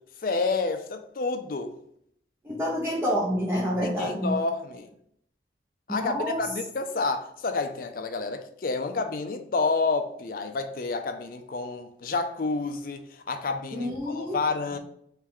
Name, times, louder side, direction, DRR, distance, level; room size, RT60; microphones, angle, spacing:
voice 1, 0.2-1.7 3.8-4.9 5.9-13.0 13.3-14.8, left 3 dB, 50° left, 0.4 m, -29 dB
voice 2, 2.4-4.4 5.9-6.5 13.7-14.4, equal, 15° right, 0.6 m, -28 dB
3.2 x 3.1 x 3.7 m
head